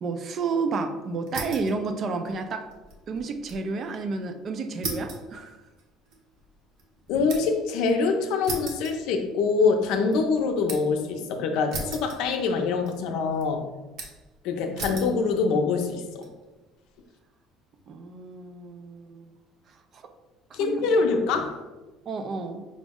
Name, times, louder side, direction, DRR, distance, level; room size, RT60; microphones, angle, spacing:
voice 1, 0.0-2.7 3.1-5.6 14.8-14.9 17.9-19.3 19.9-20.1 20.5-20.9 22.1-22.7, right 4 dB, 35° right, 8 dB, 0.3 m, -31 dB
sound 1, 1.3-1.8 2.1-3.7 4.0-4.1 4.8-7.7 8.4-9.6 10.0-11.0 11.7-12.6 12.9-13.4 14.0-14.3 14.8-15.2 15.8-16.3, right 3 dB, 55° right, 0.7 m, -37 dB
voice 2, 7.1-13.6 14.4-16.3 20.5-21.6, left 4 dB, 70° left, 4 dB, 0.5 m, -24 dB
4.9 x 2.0 x 3.5 m, 1.2 s
cardioid pair, 160°, 0 cm